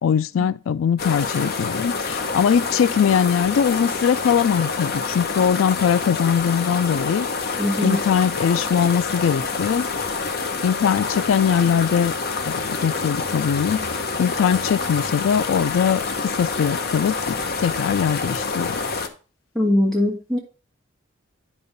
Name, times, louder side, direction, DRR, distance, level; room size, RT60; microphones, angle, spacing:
voice 1, 0.0-9.9 10.6-12.1 12.5-18.8, left 7 dB, 85° left, 0.3 m, -21 dB
sound 1, 1.0-19.1, left 4 dB, 50° left, 0.9 m, -27 dB
voice 2, 7.6-8.0 19.6-20.4, left 1 dB, 5° left, 2.0 m, -21 dB
9.5 x 5.5 x 3.9 m
head